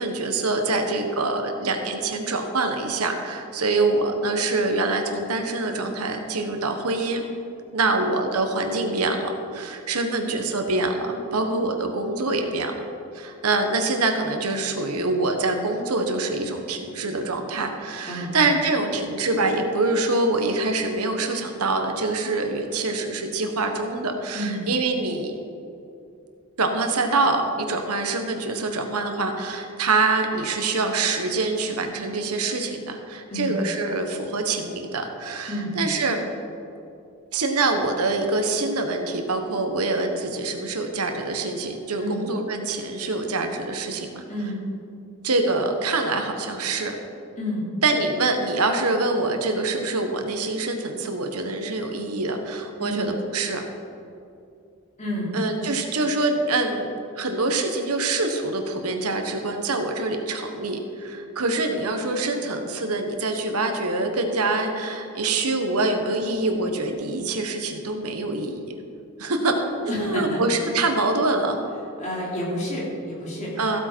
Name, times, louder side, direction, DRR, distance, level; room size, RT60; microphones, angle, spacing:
voice 1, 0.0-7.2 7.7-12.7 13.1-25.3 26.6-36.2 37.3-44.2 45.2-46.9 47.8-53.7 55.3-56.9 57.1-68.6 69.2-69.5 70.0-71.6 73.6-73.8, right 3 dB, 90° right, 5 dB, 1.2 m, -25 dB
voice 2, 55.0-55.3 69.9-70.4 72.0-73.8, left 1 dB, 35° left, -5 dB, 3.2 m, -30 dB
15.0 x 8.5 x 4.6 m, 2.6 s
head